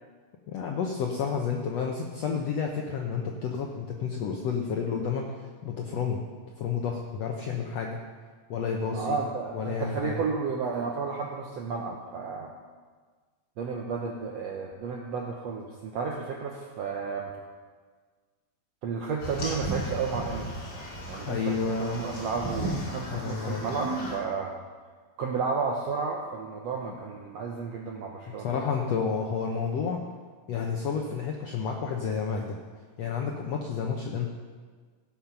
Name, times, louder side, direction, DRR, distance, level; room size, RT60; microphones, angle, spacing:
voice 1, 0.5-6.2 6.6-8.0 8.5-9.2 9.5-10.1 21.3-22.0 23.1-23.6 28.4-30.0 30.5-32.6 33.0-34.3, left 6 dB, 75° left, 1 dB, 1.5 m, -30 dB
voice 2, 8.9-12.5 13.6-17.3 18.8-24.5 25.2-28.7, right 5 dB, 75° right, 0 dB, 1.5 m, -32 dB
sound 1, 19.2-24.2, right 1 dB, 35° left, 3.0 m, -35 dB
16.5 x 7.2 x 5.9 m, 1.5 s
omnidirectional pair, 4.1 m